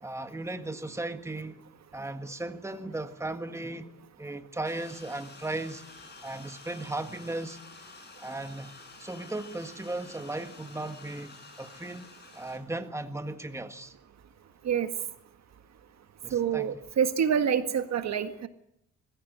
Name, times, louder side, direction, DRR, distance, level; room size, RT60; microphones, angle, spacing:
voice 1, 0.0-3.9 4.2-5.8 6.2-7.6 8.2-8.7 9.0-13.9 16.2-16.7, right 2 dB, 10° right, 1.6 m, -36 dB
sound 1, 4.6-12.6, left 3 dB, 35° left, 7.3 m, -50 dB
voice 2, 16.3-18.5, right 8 dB, 60° right, 1.7 m, -27 dB
21.5 x 15.5 x 9.4 m
cardioid pair, 90°, 30 cm